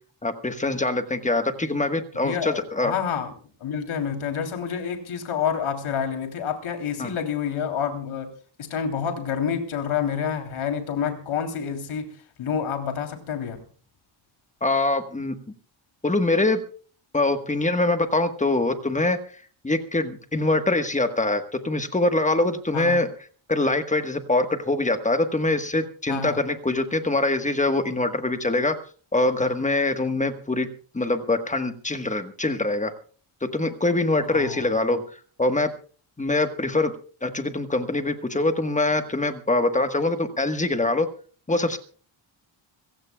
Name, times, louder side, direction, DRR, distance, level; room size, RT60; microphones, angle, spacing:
voice 1, 0.2-2.9 7.0-7.1 14.6-15.3 16.0-16.6 17.1-19.2 19.6-23.1 23.5-28.8 29.1-30.7 30.9-32.9 33.4-35.7 36.2-36.9 37.2-41.1 41.5-41.8, left 2 dB, 15° left, 8 dB, 1.3 m, -24 dB
voice 2, 2.2-3.3 3.6-8.3 8.6-13.6 22.7-23.0 26.1-26.4 34.2-34.7, left 7 dB, 80° left, 5 dB, 3.3 m, -28 dB
26.0 x 15.5 x 2.3 m, 0.41 s
wide cardioid pair, 155°, 48 cm